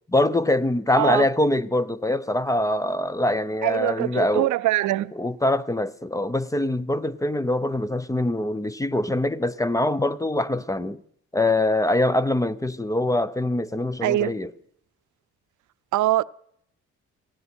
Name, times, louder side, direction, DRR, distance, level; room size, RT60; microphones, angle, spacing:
voice 1, 0.1-4.5 5.2-11.0 11.3-14.5, left 1 dB, 10° left, 0.6 m, -23 dB
voice 2, 1.0-1.3 3.6-5.1 14.0-14.4 15.9-16.2, right 15 dB, 75° right, 0.5 m, -23 dB
17.5 x 16.5 x 4.4 m
cardioid pair, 90°, 30 cm